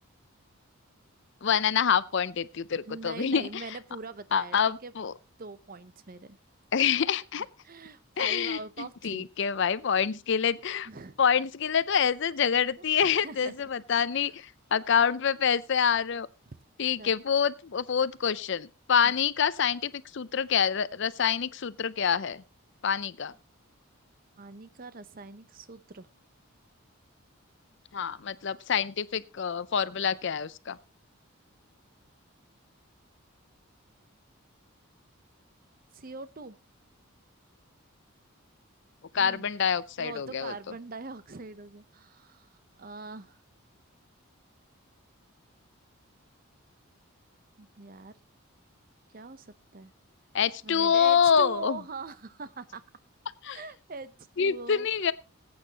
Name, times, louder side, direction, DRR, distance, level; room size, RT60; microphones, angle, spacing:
voice 1, 1.4-3.6 4.3-5.1 6.7-7.5 8.2-10.9 11.2-16.3 16.8-22.4 22.8-23.3 27.9-30.8 39.1-40.5 50.3-51.8 53.4-53.6 54.4-55.1, left 7 dB, 55° left, 17 dB, 0.5 m, -26 dB
voice 2, 2.9-4.6 4.8-4.9 5.4-6.4 7.6-9.3 10.8-11.2 12.8-13.5 14.1-14.3 17.0-17.1 19.0-19.1 24.4-26.1 35.9-36.6 39.2-39.4 40.0-42.5 42.8-43.4 47.6-48.1 49.1-49.9 50.6-52.8 53.4-55.1, right 3 dB, 40° right, 14 dB, 0.7 m, -42 dB
20.5 x 8.7 x 2.9 m, 0.28 s
head